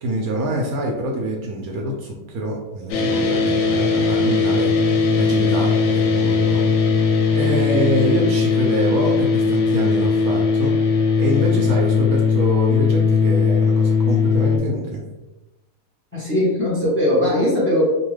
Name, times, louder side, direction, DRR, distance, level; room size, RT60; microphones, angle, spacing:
voice 1, 0.0-4.7 5.2-6.7 7.3-10.7 11.1-15.0, right 1 dB, 70° right, -1 dB, 1.0 m, -25 dB
sound 1, 2.9-14.6, left 5 dB, 90° left, 1.2 m, -18 dB
voice 2, 16.1-17.9, left 1 dB, 10° left, -7 dB, 0.7 m, -19 dB
2.8 x 2.2 x 3.1 m, 1.0 s
omnidirectional pair, 1.7 m